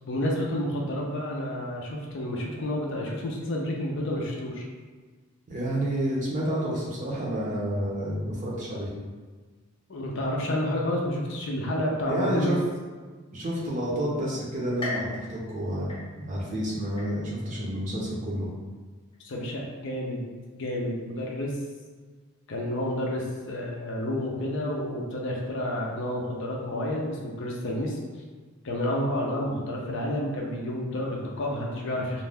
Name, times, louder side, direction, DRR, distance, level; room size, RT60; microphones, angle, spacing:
voice 1, 0.1-4.7 9.9-12.5 19.2-20.2 20.5-21.5 22.5-28.0 28.6-32.2, left 1 dB, 55° left, -2 dB, 0.4 m, -30 dB
voice 2, 5.5-8.9 12.1-12.6 13.3-18.5, equal, 35° right, -4 dB, 0.6 m, -29 dB
sound 1, 14.8-16.5 17.0-17.6 18.1-18.2 19.1-19.2, left 2 dB, 25° left, 0.8 m, -38 dB
2.4 x 2.1 x 3.3 m, 1.4 s
head